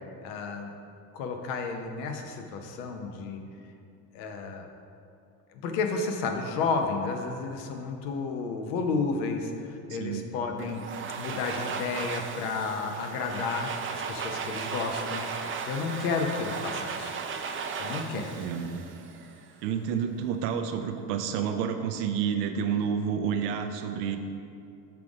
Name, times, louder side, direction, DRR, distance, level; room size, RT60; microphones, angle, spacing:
voice 1, 0.2-0.7 1.1-3.4 4.1-4.7 5.5-10.8 11.2-15.3 15.7-17.2 17.8-18.3, left 4 dB, 80° left, 4 dB, 0.9 m, -32 dB
voice 2, 9.9-10.3 15.9-16.1 18.1-18.8 19.6-24.2, right 7 dB, 85° right, 5 dB, 0.6 m, -30 dB
Domestic sounds home sounds, 10.6-19.5, right 5 dB, 25° right, 0.4 m, -36 dB
5.9 x 3.8 x 4.8 m, 2.5 s
supercardioid pair, 80°, 47 cm